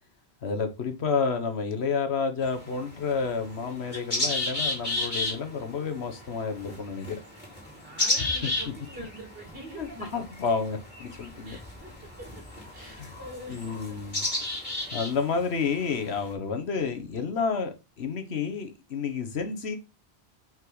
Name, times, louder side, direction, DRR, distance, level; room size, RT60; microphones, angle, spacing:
voice 1, 0.4-7.2 8.2-8.3 9.8-11.6 12.8-13.1 13.5-14.5 14.9-19.8, left 5 dB, 80° left, 1.4 m, -30 dB
sound 1, 2.4-16.3, left 2 dB, 45° left, 2.9 m, -34 dB
voice 2, 7.6-10.1 11.4-12.4 12.7-14.0 14.6-15.0, right 1 dB, 60° right, 2.6 m, -45 dB
5.6 x 5.4 x 3.9 m
omnidirectional pair, 1.1 m